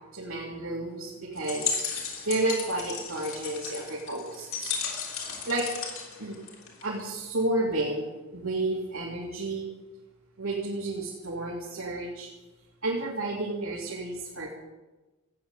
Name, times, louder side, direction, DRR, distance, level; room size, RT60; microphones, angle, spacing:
voice 1, 0.1-1.7 2.2-4.7 5.5-5.7 6.2-6.4 6.8-9.7 10.4-12.3 12.8-14.5, right 2 dB, 90° right, -5 dB, 2.9 m, -31 dB
sound 1, 1.4-7.0, left 6 dB, 80° left, 3.4 m, -35 dB
15.0 x 9.0 x 8.3 m, 1.1 s
head